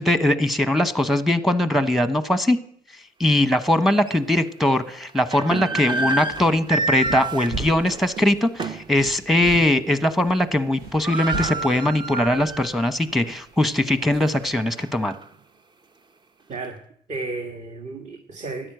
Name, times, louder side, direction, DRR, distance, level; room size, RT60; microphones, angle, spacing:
voice 1, 0.0-2.6 3.2-15.1, left 1 dB, ahead, 12 dB, 1.1 m, -21 dB
sound 1, 3.4-3.5 4.1-4.2 5.1-8.9 9.3-9.5 9.9-10.3 10.5-10.6 10.8-12.8 13.2-13.3 13.9-15.2, right 3 dB, 25° right, 0.8 m, -29 dB
sound 2, 6.3-14.6, right 3 dB, 80° right, 7.2 m, -39 dB
voice 2, 17.1-18.7, right 3 dB, 40° right, 4 dB, 1.7 m, -33 dB
13.5 x 10.5 x 7.9 m, 0.64 s
cardioid pair, 110°, 17 cm